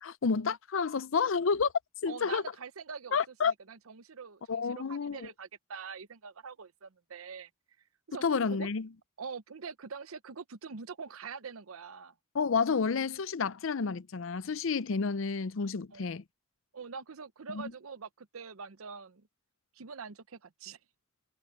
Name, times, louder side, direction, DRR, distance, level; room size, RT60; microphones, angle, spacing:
voice 1, 0.0-1.7 2.0-2.4 3.1-3.5 4.5-5.3 8.2-8.9 12.3-16.2 17.5-17.7, left 5 dB, 65° left, 0.6 m, -30 dB
voice 2, 2.1-7.5 8.1-8.7 9.2-12.1 15.9-16.1 16.7-19.3 19.7-20.8, right 5 dB, 85° right, 0.8 m, -44 dB
head